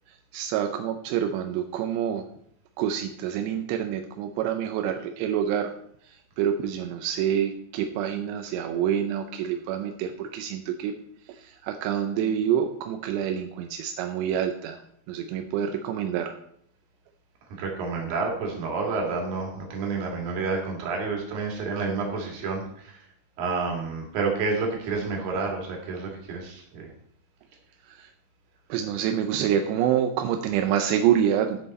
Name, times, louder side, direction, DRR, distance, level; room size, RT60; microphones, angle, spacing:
voice 1, 0.1-2.3 2.8-5.7 6.0-10.9 11.3-14.8 15.1-16.4 27.8-28.1 28.7-31.6, right 9 dB, 85° right, 5 dB, 2.8 m, -27 dB
voice 2, 17.6-23.0 23.4-26.9, right 4 dB, 60° right, 0 dB, 3.6 m, -29 dB
13.5 x 5.7 x 4.1 m, 0.69 s
omnidirectional pair, 4.9 m